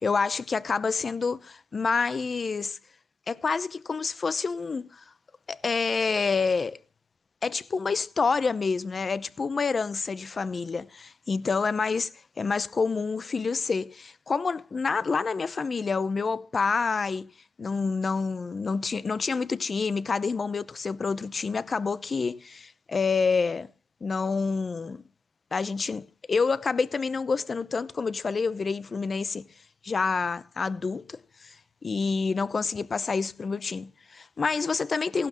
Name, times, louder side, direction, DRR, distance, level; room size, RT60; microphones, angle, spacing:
voice 1, 0.0-2.8 3.3-5.0 5.5-6.8 7.4-12.1 12.4-17.3 17.6-23.7 24.0-25.0 25.5-29.5 29.8-31.5 31.8-35.3, left 4 dB, 35° left, 0.7 m, -28 dB
16.0 x 12.0 x 3.0 m
cardioid pair, 90°, 0 cm